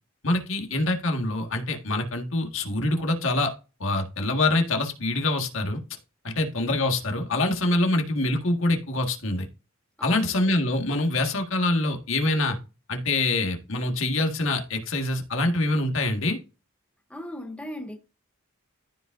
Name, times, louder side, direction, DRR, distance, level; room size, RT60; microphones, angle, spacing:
voice 1, 0.2-3.5 3.8-5.8 6.2-9.5 10.0-12.6 12.9-16.4, left 2 dB, 65° left, 1.7 m, -25 dB
voice 2, 10.0-10.5 17.1-18.0, left 1 dB, 5° left, 0.9 m, -37 dB
14.0 x 5.1 x 2.6 m
head